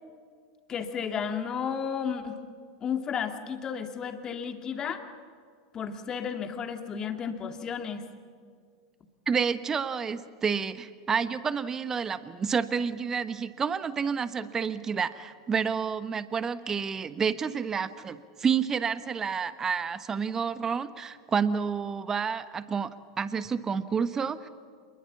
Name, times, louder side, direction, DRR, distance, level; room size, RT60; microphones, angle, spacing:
voice 1, 0.7-2.4 2.8-5.0 5.7-8.0, left 7 dB, 30° left, 7 dB, 2.2 m, -33 dB
voice 2, 9.3-22.9 23.2-24.5, right 6 dB, 25° right, 13 dB, 1.2 m, -29 dB
27.5 x 21.5 x 7.2 m, 2.1 s
figure-of-eight pair, 90°, 2 cm